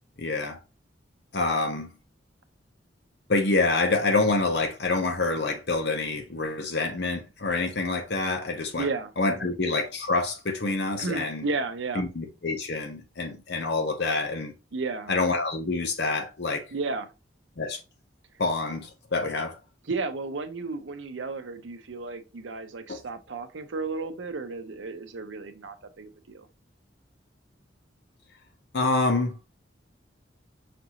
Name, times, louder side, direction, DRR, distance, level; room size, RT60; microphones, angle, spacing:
voice 1, 0.2-0.6 1.3-1.9 3.3-8.9 9.2-11.5 12.0-14.5 15.1-16.7 17.6-17.8 18.4-19.6 22.9-23.0 28.7-29.4, left 3 dB, 60° left, 0.7 m, -27 dB
voice 2, 8.8-9.1 9.4-9.5 11.0-12.0 14.7-15.1 16.7-17.1 19.9-26.5, right 3 dB, 85° right, 0.7 m, -33 dB
5.8 x 2.6 x 2.9 m
head